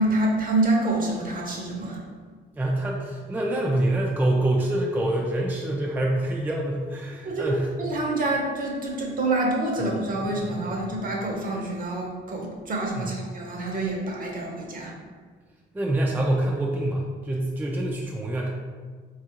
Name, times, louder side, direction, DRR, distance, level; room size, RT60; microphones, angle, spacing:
voice 1, 0.0-2.0 7.2-7.5 7.8-14.9, right 2 dB, 45° right, -1 dB, 0.8 m, -27 dB
voice 2, 2.5-7.7 10.2-10.9 13.0-13.3 15.7-18.5, right 1 dB, 10° right, -2 dB, 0.4 m, -26 dB
3.6 x 2.4 x 2.8 m, 1.5 s
cardioid pair, 90°, 20 cm